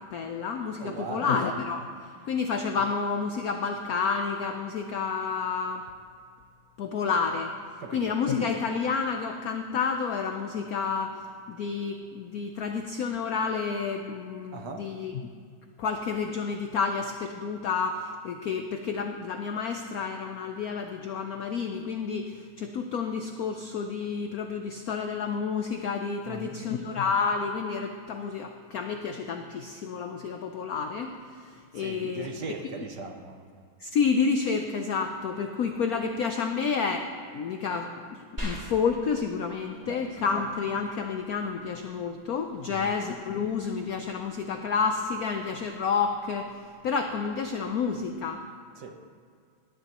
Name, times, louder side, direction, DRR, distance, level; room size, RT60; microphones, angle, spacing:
voice 1, 0.0-1.9 2.2-5.8 6.8-7.5 7.9-11.2 11.5-15.2 15.8-31.1 31.4-32.3 33.8-37.1 37.3-46.5 46.8-48.4, left 5 dB, 75° left, 5 dB, 0.8 m, -30 dB
voice 2, 0.7-1.4 2.2-2.3 7.8-8.2 14.5-14.9 26.2-26.6 31.7-33.4 39.8-40.0 42.7-43.0 48.8-49.0, right 4 dB, 60° right, 4 dB, 1.4 m, -39 dB
sound 1, 38.4-48.4, equal, 20° right, 3.8 m, -46 dB
18.0 x 11.0 x 3.0 m, 2.1 s
omnidirectional pair, 2.3 m